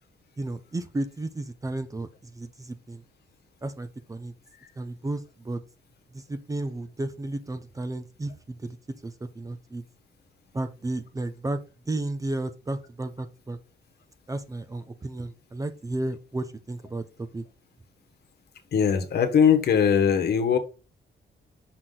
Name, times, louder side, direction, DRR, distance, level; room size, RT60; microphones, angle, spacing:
voice 1, 0.4-3.0 3.6-4.3 4.8-5.6 6.1-9.8 10.5-11.6 11.9-13.6 14.3-17.4, right 2 dB, 20° right, 11 dB, 0.7 m, -33 dB
voice 2, 18.7-20.6, left 7 dB, 65° left, 6 dB, 1.4 m, -21 dB
6.2 x 5.9 x 3.9 m, 0.31 s
cardioid pair, 125°, 19 cm